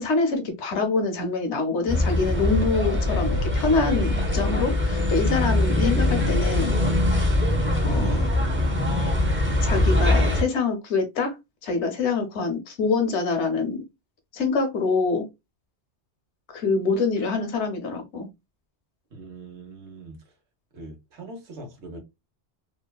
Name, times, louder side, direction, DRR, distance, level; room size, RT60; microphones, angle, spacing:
voice 1, 0.0-6.7 7.8-8.3 9.6-11.3 11.6-13.8 14.3-15.3 16.5-18.3, left 4 dB, 85° left, 1.0 m, -25 dB
sound 1, 1.9-10.4, left 1 dB, 15° right, 0.5 m, -22 dB
voice 2, 19.1-20.2 20.7-22.0, right 2 dB, 85° right, 1.2 m, -41 dB
3.1 x 2.1 x 2.2 m
omnidirectional pair, 1.1 m